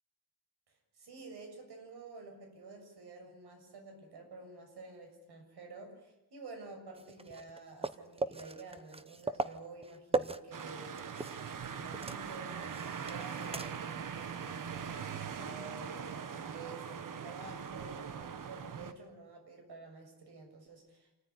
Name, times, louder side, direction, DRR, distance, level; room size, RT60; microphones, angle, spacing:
voice 1, 0.7-12.6 13.1-21.1, right 3 dB, 80° right, 4 dB, 7.1 m, -50 dB
sound 1, 6.9-11.6 11.8-14.0 14.3-14.4 17.0-17.1, right 3 dB, 15° right, 0.8 m, -39 dB
sound 2, 10.5-18.9, right 7 dB, 55° right, 1.4 m, -41 dB
27.5 x 14.5 x 9.7 m, 0.96 s
wide cardioid pair, 150°, 39 cm